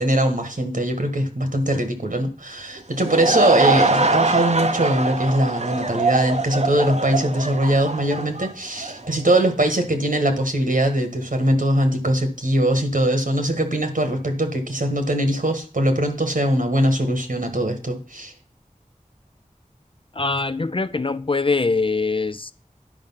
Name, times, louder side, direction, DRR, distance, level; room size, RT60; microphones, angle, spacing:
voice 1, 0.0-18.3, right 1 dB, 75° right, 1.6 m, -21 dB
Laughter / Crowd, 2.8-9.1, right 3 dB, 50° right, 0.7 m, -23 dB
voice 2, 20.2-22.5, left 3 dB, 40° left, 0.4 m, -23 dB
10.0 x 5.1 x 5.7 m
wide cardioid pair, 40°, 14 cm